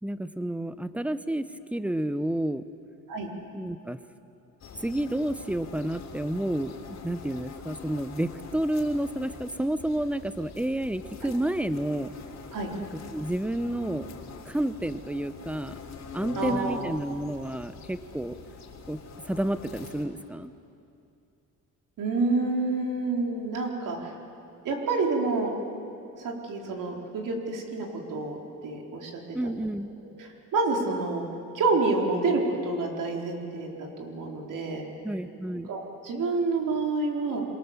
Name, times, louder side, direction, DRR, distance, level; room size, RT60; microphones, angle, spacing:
voice 1, 0.0-2.7 3.5-4.0 4.8-12.1 12.9-14.1 14.5-15.7 16.1-18.4 18.9-20.5 29.3-29.9 35.0-35.7, right 1 dB, 5° right, 12 dB, 0.9 m, -30 dB
sound 1, 4.6-20.1, left 4 dB, 55° left, 3.5 m, -43 dB
voice 2, 16.4-16.9 22.0-24.1 24.6-25.5 26.2-29.2 30.5-31.2 31.5-34.9 35.7-37.4, right 3 dB, 70° right, 0 dB, 4.1 m, -28 dB
26.5 x 23.0 x 7.3 m, 2.6 s
cardioid pair, 105°, 33 cm